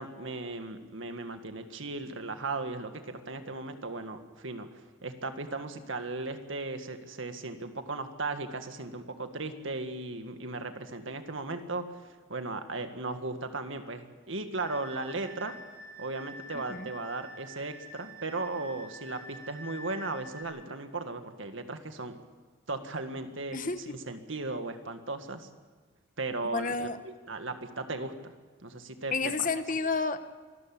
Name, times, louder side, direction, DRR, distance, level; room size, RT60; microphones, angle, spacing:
voice 1, 0.0-15.5 16.0-22.1 22.7-25.5 26.2-28.3 28.6-29.5, right 3 dB, 75° right, 7 dB, 1.9 m, -37 dB
sound 1, 14.6-20.4, equal, 15° left, 4.0 m, -47 dB
voice 2, 16.5-16.9 23.5-23.9 26.5-27.0 29.1-30.3, left 4 dB, 40° left, 10 dB, 1.1 m, -31 dB
25.0 x 13.5 x 8.7 m, 1.5 s
head